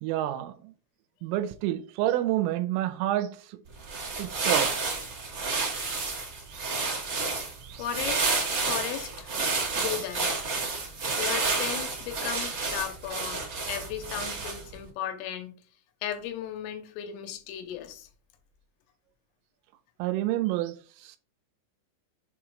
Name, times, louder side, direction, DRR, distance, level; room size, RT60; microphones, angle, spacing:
voice 1, 0.0-0.7 1.2-3.6 4.2-4.9 6.5-6.7 7.6-7.8 20.0-20.8 21.0-21.2, right 14 dB, 80° right, 3.2 m, -29 dB
sound 1, 3.7-14.8, right 4 dB, 50° right, 1.3 m, -30 dB
voice 2, 7.8-8.2 8.6-9.3 9.8-10.3 11.2-15.6 16.0-18.1, left 10 dB, 85° left, 3.4 m, -35 dB
7.3 x 3.1 x 4.8 m
omnidirectional pair, 5.9 m